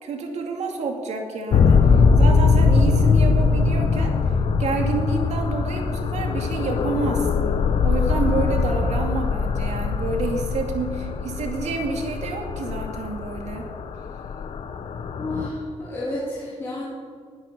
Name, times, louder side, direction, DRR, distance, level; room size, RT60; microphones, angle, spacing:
voice 1, 0.0-4.1 4.6-13.7, right 4 dB, 70° right, 3 dB, 2.3 m, -29 dB
sound 1, 1.5-15.5, left 5 dB, 55° left, 0.9 m, -21 dB
voice 2, 15.2-16.8, left 1 dB, 20° left, -8 dB, 3.2 m, -31 dB
20.0 x 8.8 x 6.7 m, 2.1 s
wide cardioid pair, 180°, 12 cm